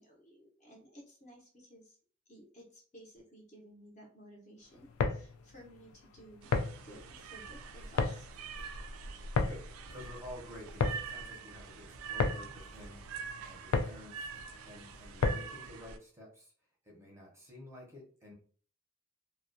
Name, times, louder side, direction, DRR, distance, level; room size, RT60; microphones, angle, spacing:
voice 1, 0.0-2.0 2.3-6.5 6.8-8.3, equal, 35° left, -2 dB, 0.7 m, -55 dB
sound 1, 4.8-15.7, left 4 dB, 85° left, 0.3 m, -35 dB
sound 2, 6.4-16.0, right 5 dB, 75° right, 0.3 m, -45 dB
voice 2, 9.5-13.0 13.4-14.3 14.6-16.5 16.8-18.3, left 1 dB, 15° right, -2 dB, 0.7 m, -51 dB
2.3 x 2.1 x 2.5 m, 0.43 s
head